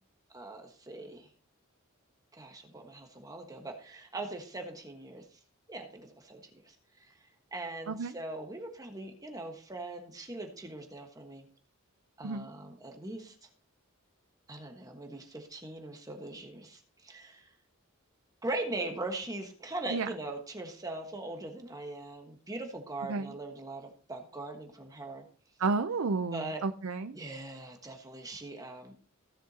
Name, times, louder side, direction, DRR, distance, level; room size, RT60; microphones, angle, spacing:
voice 1, 0.3-1.3 2.3-5.4 5.7-11.5 12.2-13.5 14.5-17.5 18.4-25.2 26.3-26.6 27.1-28.9, right 2 dB, 15° right, 3 dB, 1.3 m, -41 dB
voice 2, 25.6-27.2, right 4 dB, 70° right, 9 dB, 0.6 m, -31 dB
16.0 x 7.3 x 2.8 m, 0.43 s
head